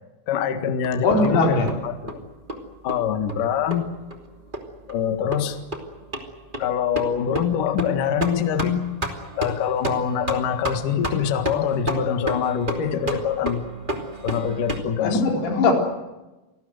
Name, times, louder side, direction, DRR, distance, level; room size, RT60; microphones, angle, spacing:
voice 1, 0.3-1.6 1.8-2.2 2.8-3.9 4.9-5.6 6.6-8.9 9.4-13.7 14.2-15.2, left 8 dB, 60° left, 8 dB, 2.4 m, -24 dB
sound 1, 0.8-14.8, right 1 dB, 20° right, 1.3 m, -32 dB
voice 2, 1.0-1.7 15.0-15.7, left 3 dB, 85° left, 2 dB, 6.7 m, -20 dB
27.5 x 19.5 x 7.9 m, 1.1 s
omnidirectional pair, 5.9 m